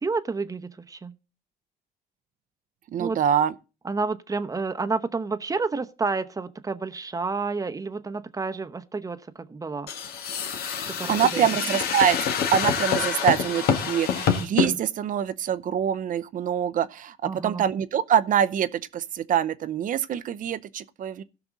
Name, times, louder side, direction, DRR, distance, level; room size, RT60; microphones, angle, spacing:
voice 1, 0.0-1.1 3.0-3.2 3.8-9.9 10.9-11.5 17.2-17.6, right 4 dB, 20° right, 0.9 m, -30 dB
voice 2, 2.9-3.5 11.1-12.2 12.5-21.2, right 9 dB, 55° right, 0.7 m, -25 dB
sound 1, 9.9-14.7, left 7 dB, 70° left, 1.9 m, -26 dB
16.5 x 6.0 x 4.0 m
cardioid pair, 90°, 17 cm